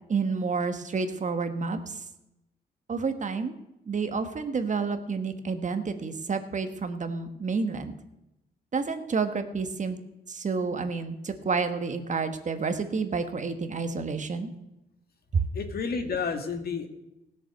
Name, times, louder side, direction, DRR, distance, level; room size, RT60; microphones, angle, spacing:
voice 1, 0.1-1.8 2.9-3.5 3.9-7.9 8.7-10.0 10.3-14.5, right 4 dB, 45° right, 8 dB, 1.4 m, -29 dB
voice 2, 15.5-16.9, left 5 dB, 60° left, 6 dB, 1.9 m, -30 dB
16.5 x 7.0 x 7.9 m, 0.91 s
cardioid pair, 80°, 18 cm